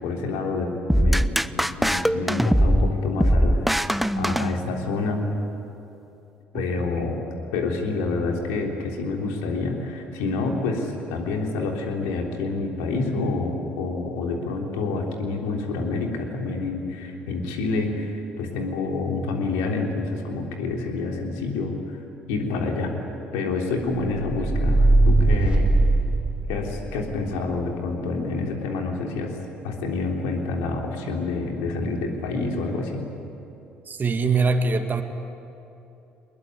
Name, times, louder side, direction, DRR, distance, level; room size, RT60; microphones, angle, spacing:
voice 1, 0.0-5.3 6.5-7.2 7.5-22.0 22.3-22.9 23.3-25.7 26.5-29.3 29.6-33.1, left 3 dB, 70° left, 1 dB, 3.5 m, -28 dB
sound 1, 0.9-5.1, equal, ahead, 0.7 m, -21 dB
sound 2, 24.2-26.8, right 2 dB, 20° right, 3.3 m, -19 dB
voice 2, 33.9-35.0, right 4 dB, 35° right, 6 dB, 2.2 m, -23 dB
23.0 x 21.0 x 9.8 m, 2.8 s
hypercardioid pair, 55°, 5 cm